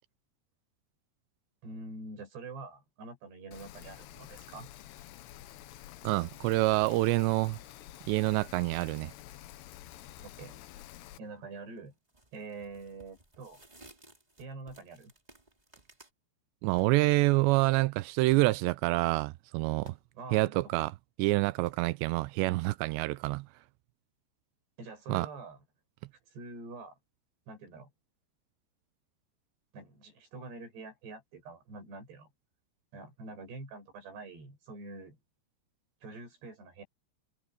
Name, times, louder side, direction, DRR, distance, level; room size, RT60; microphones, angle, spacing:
voice 1, 1.6-4.7 10.2-10.6 11.2-11.9 12.3-13.6 14.4-15.1 20.1-20.9 24.8-25.6 26.3-27.0 27.5-27.9 29.7-32.3 32.9-35.2 36.0-36.8, right 3 dB, 60° right, 9.0 m, -45 dB
Rain, 3.5-11.2, left 13 dB, 75° left, 2.9 m, -49 dB
voice 2, 6.0-7.6 8.1-9.1 16.6-20.0 20.3-20.9 21.2-23.5 25.1-25.3, right 20 dB, 85° right, 2.6 m, -27 dB
sound 1, 11.2-11.5 12.1-16.1, right 2 dB, 10° right, 2.3 m, -58 dB
sound 2, 16.8-17.4 18.2-18.8 19.7-20.2 20.6-20.7 21.6-22.2 23.1-23.8, left 6 dB, 60° left, 4.4 m, -57 dB
omnidirectional pair, 5.3 m